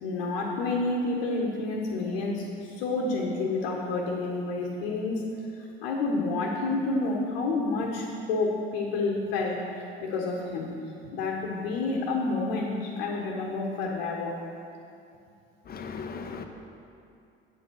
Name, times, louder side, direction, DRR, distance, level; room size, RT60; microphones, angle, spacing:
voice 1, 0.0-5.2 5.8-10.7 11.1-14.4, left 3 dB, 65° left, -2 dB, 1.4 m, -29 dB
voice 2, 15.7-16.4, left 5 dB, 30° left, 5 dB, 1.1 m, -37 dB
8.5 x 7.7 x 6.3 m, 2.5 s
figure-of-eight pair, 65°, 31 cm